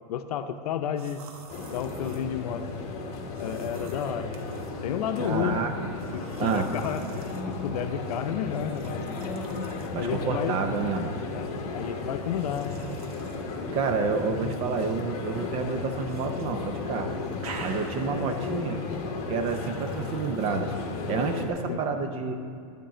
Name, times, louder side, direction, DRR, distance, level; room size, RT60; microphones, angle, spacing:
voice 1, 0.1-1.2 1.7-2.6 3.4-4.3 4.8-5.7 6.1-9.0 9.9-10.6 11.3-11.5 11.7-12.8 14.4-14.5 21.7-21.8, left 9 dB, 85° left, 8 dB, 0.6 m, -31 dB
sound 1, 1.0-2.3 3.3-4.7 6.0-7.4 8.5-9.9 10.8-11.1 12.3-13.5 14.4-15.0 16.0-16.5 16.8-18.3 19.4-20.5, right 4 dB, 75° right, 1.3 m, -47 dB
sound 2, 1.5-21.5, left 3 dB, 35° left, 1.4 m, -35 dB
voice 2, 5.2-5.7 6.4-6.7 9.9-11.2 13.7-17.1 17.6-18.8 19.3-20.7 21.1-22.3, right 4 dB, 30° right, 6 dB, 0.7 m, -29 dB
13.0 x 5.2 x 7.5 m, 2.3 s
supercardioid pair, 160°, 19 cm